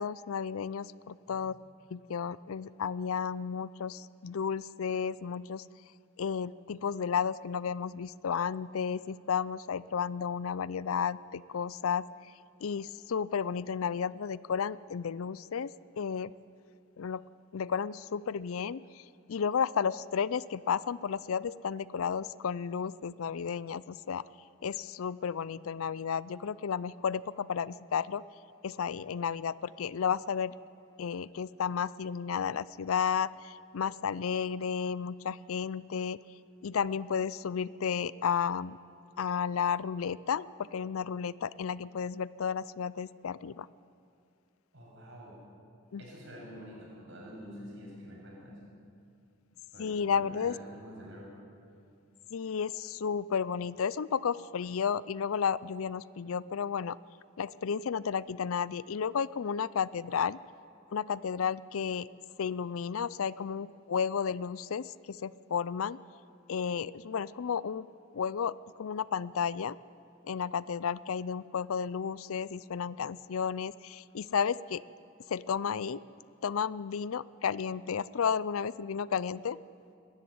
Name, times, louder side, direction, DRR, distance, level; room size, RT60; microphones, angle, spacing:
voice 1, 0.0-1.5 1.9-5.7 6.2-12.1 12.6-16.3 17.0-17.2 17.5-24.2 24.6-28.2 28.6-30.5 31.0-36.2 36.6-38.8 39.2-43.7 45.9-46.0 49.8-50.6 52.3-57.0 57.4-60.4 60.9-62.1 62.4-66.0 66.5-67.9 68.1-68.5 68.8-69.8 70.2-74.8 75.3-76.0 76.4-79.6, left 7 dB, 75° left, 19 dB, 0.4 m, -32 dB
voice 2, 44.7-45.4 46.0-48.6 49.7-51.3, equal, 60° right, -3 dB, 7.0 m, -47 dB
22.0 x 13.0 x 9.4 m, 2.5 s
head